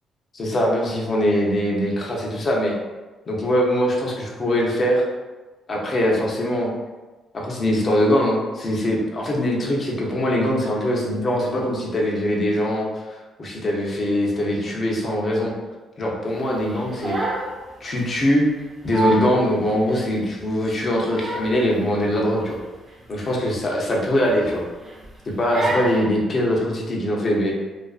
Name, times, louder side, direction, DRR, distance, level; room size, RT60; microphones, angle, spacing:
voice 1, 0.3-2.7 3.3-5.0 5.7-6.7 7.3-13.1 13.4-15.5 16.0-17.2 17.8-18.4 18.8-22.6 23.1-24.6 25.2-27.5, equal, 40° left, -2 dB, 0.6 m, -22 dB
Crying sobbing, 16.7-17.5 17.9-18.1 18.6-18.7 18.9-19.4 19.9-20.0 20.8-21.6 21.9-22.1 22.5-22.6 23.0-23.1 23.9-24.5 24.8-25.1 25.5-26.0, right 2 dB, 25° right, 0.6 m, -27 dB
2.4 x 2.3 x 2.3 m, 1.2 s
cardioid pair, 90°, 0 cm